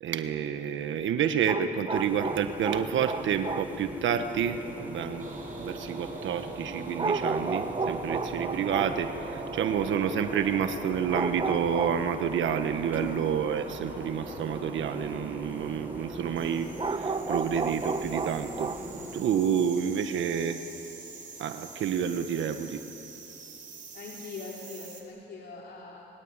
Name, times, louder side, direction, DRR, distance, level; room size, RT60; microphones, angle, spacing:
voice 1, 0.0-5.3 5.6-18.7 19.1-20.6 21.4-22.8, right 8 dB, 75° right, 8 dB, 1.4 m, -29 dB
sound 1, 1.5-3.8 6.9-9.1 11.1-12.2 16.8-19.6, right 4 dB, 25° right, 1.1 m, -32 dB
sound 2, 1.9-19.2, right 1 dB, 10° right, 5.3 m, -41 dB
sound 3, 5.2-25.0, right 3 dB, 40° right, 4.7 m, -43 dB
voice 2, 23.9-26.1, left 4 dB, 55° left, -3 dB, 3.3 m, -42 dB
25.0 x 22.5 x 9.0 m, 3.0 s
cardioid pair, 90°, 20 cm